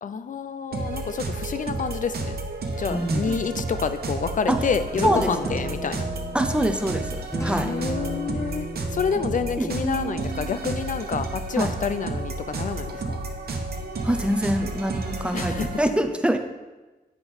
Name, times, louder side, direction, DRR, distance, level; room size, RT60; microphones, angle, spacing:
voice 1, 0.0-2.4 2.8-6.1 7.6-8.7 8.9-13.2 15.3-15.8, left 6 dB, 55° left, 11 dB, 0.4 m, -28 dB
sound 1, 0.7-15.8, right 3 dB, 80° right, 1.0 m, -31 dB
voice 2, 2.9-3.3 4.5-4.6 5.0-5.3 6.3-7.7 9.6-9.7 11.6-11.7 14.0-16.4, right 1 dB, 5° right, 6 dB, 0.6 m, -24 dB
Guitar, 4.5-14.3, right 1 dB, 20° left, 0.8 m, -37 dB
9.6 x 3.5 x 6.1 m, 1.2 s
wide cardioid pair, 115°, 16 cm